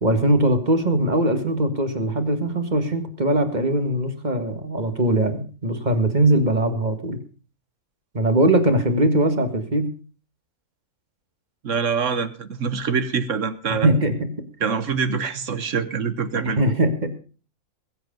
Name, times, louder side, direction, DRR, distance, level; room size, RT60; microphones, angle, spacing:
voice 1, 0.0-7.2 8.1-9.9 13.8-14.3 16.3-17.2, right 1 dB, 30° right, 8 dB, 1.9 m, -21 dB
voice 2, 11.6-13.9 14.6-16.6, right 6 dB, 55° right, 13 dB, 1.4 m, -25 dB
21.5 x 8.1 x 5.2 m, 0.37 s
omnidirectional pair, 1.6 m